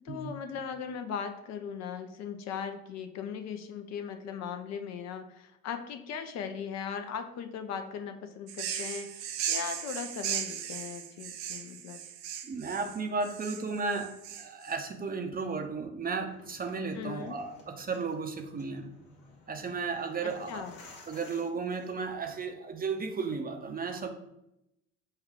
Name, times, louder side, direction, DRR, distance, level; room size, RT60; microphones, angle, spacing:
voice 1, 0.0-12.0 16.9-17.4 20.2-20.8, left 7 dB, 50° left, 7 dB, 0.5 m, -38 dB
sound 1, 8.5-14.7, right 9 dB, 70° right, 0.6 m, -37 dB
voice 2, 12.4-18.9 19.5-20.7 21.1-24.1, right 4 dB, 25° right, 5 dB, 0.6 m, -34 dB
sound 2, 16.2-22.4, left 3 dB, 70° left, 1.1 m, -55 dB
5.4 x 2.3 x 3.5 m, 0.84 s
hypercardioid pair, 60°, 36 cm